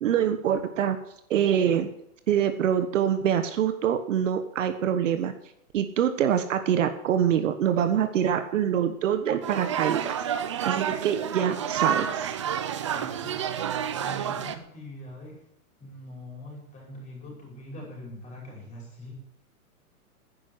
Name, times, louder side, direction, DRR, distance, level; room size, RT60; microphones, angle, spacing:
voice 1, 0.0-1.0 1.3-1.9 2.3-5.3 5.7-10.3 10.6-12.3, right 9 dB, 55° right, 9 dB, 1.4 m, -25 dB
sound 1, 9.4-14.6, right 8 dB, 20° right, 0.4 m, -29 dB
voice 2, 12.6-13.4 14.0-15.4 15.8-19.1, left 1 dB, 15° left, -2 dB, 5.4 m, -43 dB
11.0 x 10.0 x 8.1 m, 0.77 s
hypercardioid pair, 155°, 44 cm